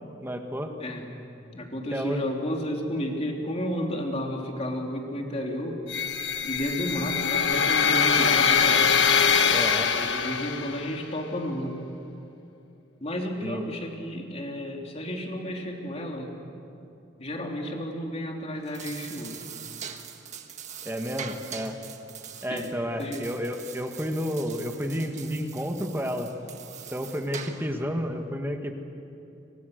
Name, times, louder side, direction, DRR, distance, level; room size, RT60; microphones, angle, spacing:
voice 1, 0.2-0.7 1.9-2.2 9.5-9.9 13.4-13.6 20.8-21.8 22.4-26.3 26.9-28.7, equal, 10° right, 4 dB, 1.8 m, -31 dB
voice 2, 0.8-1.1 1.5-5.8 6.4-9.0 9.9-11.8 13.0-16.3 17.2-19.4 22.5-22.7 23.0-23.2, equal, 35° left, 1 dB, 3.3 m, -32 dB
sound 1, 5.9-10.9, left 6 dB, 70° left, 1.3 m, -23 dB
sound 2, 18.5-27.8, right 7 dB, 40° right, 1.6 m, -42 dB
30.0 x 25.0 x 6.7 m, 2.7 s
head